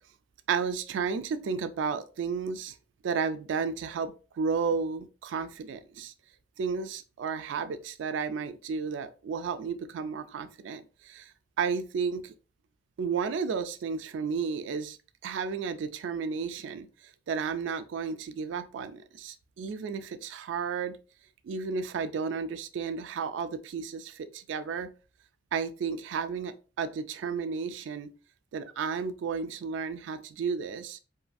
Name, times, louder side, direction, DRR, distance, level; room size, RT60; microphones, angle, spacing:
voice 1, 0.5-2.8 3.0-6.1 6.6-11.3 11.6-12.3 13.0-15.0 15.2-21.0 21.4-24.9 25.5-28.1 28.5-31.0, right 5 dB, 80° right, 0.3 m, -33 dB
2.6 x 2.5 x 2.3 m
head